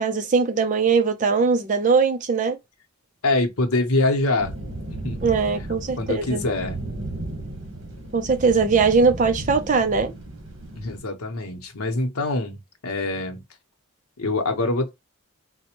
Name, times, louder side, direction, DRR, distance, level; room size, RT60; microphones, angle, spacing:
voice 1, 0.0-2.6 5.2-6.4 8.1-10.1, right 5 dB, 35° right, 0.5 m, -20 dB
voice 2, 3.2-4.5 4.9-5.3 6.0-6.8 10.8-13.4 14.2-14.9, left 2 dB, 90° left, 0.8 m, -24 dB
sound 1, 4.4-11.0, right 1 dB, 60° right, 1.2 m, -34 dB
4.1 x 2.1 x 2.9 m
head